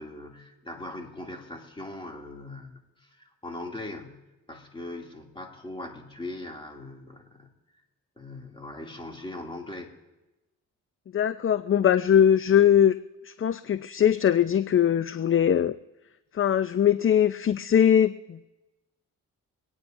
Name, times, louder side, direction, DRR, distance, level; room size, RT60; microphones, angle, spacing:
voice 1, 0.0-7.5 8.2-9.9, left 2 dB, 15° left, 1 dB, 2.6 m, -40 dB
voice 2, 11.1-12.9 13.3-15.7 16.3-18.5, left 9 dB, 35° left, 13 dB, 0.5 m, -21 dB
25.0 x 9.8 x 2.7 m, 1.0 s
supercardioid pair, 55°, 36 cm